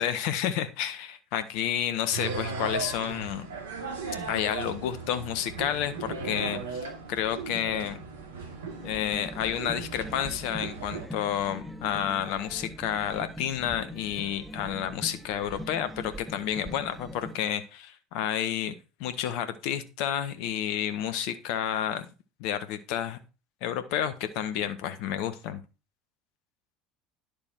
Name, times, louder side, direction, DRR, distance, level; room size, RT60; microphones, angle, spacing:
voice 1, 0.0-3.5 4.3-8.0 8.8-18.7 19.0-22.1 22.4-23.2 23.6-25.6, left 10 dB, 65° left, 1.3 m, -30 dB
sound 1, 2.1-11.1, right 4 dB, 80° right, 2.5 m, -37 dB
sound 2, 3.4-8.9, left 2 dB, 85° left, 2.3 m, -53 dB
sound 3, 8.7-17.4, equal, ahead, 1.8 m, -42 dB
11.0 x 6.9 x 4.6 m
hypercardioid pair, 70°, 0 cm